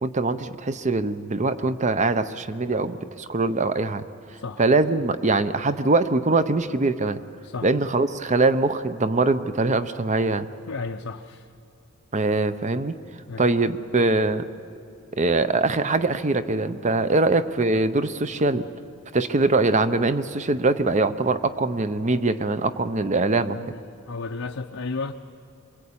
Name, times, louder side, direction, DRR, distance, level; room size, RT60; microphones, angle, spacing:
voice 1, 0.0-4.0 4.6-7.2 7.6-10.5 12.1-12.9 13.4-14.5 15.2-18.7 19.1-23.6, right 3 dB, 35° right, 12 dB, 0.7 m, -22 dB
voice 2, 10.7-11.4 13.3-13.5 23.5-23.8 24.1-25.1, left 4 dB, 80° left, 3 dB, 0.7 m, -33 dB
25.0 x 22.0 x 8.6 m, 2.6 s
head